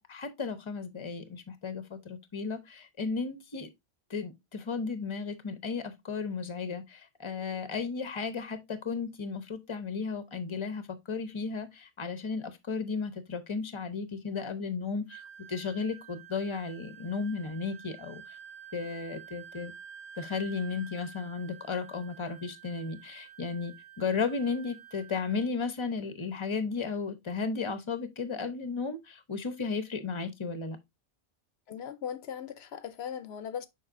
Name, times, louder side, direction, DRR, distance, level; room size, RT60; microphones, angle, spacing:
voice 1, 0.0-3.7 4.1-15.2 15.5-18.4 18.7-19.7 20.2-30.8, left 5 dB, 30° left, 0.9 m, -34 dB
Wind instrument woodwind instrument, 15.1-25.5, right 9 dB, 10° left, 1.1 m, -50 dB
voice 2, 31.7-33.7, left 8 dB, 85° left, 0.9 m, -38 dB
7.2 x 5.3 x 2.5 m
omnidirectional pair, 1.0 m